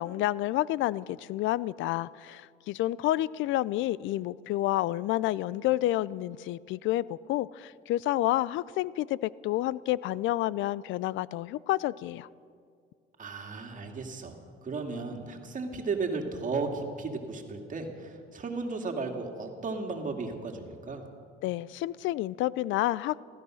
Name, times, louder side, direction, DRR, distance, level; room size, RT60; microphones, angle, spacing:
voice 1, 0.0-12.3 21.4-23.2, left 15 dB, 70° left, 21 dB, 0.4 m, -29 dB
voice 2, 13.2-14.4 14.6-21.0, right 4 dB, 40° right, 3 dB, 2.3 m, -35 dB
15.5 x 13.5 x 6.4 m, 2.2 s
supercardioid pair, 85°, 21 cm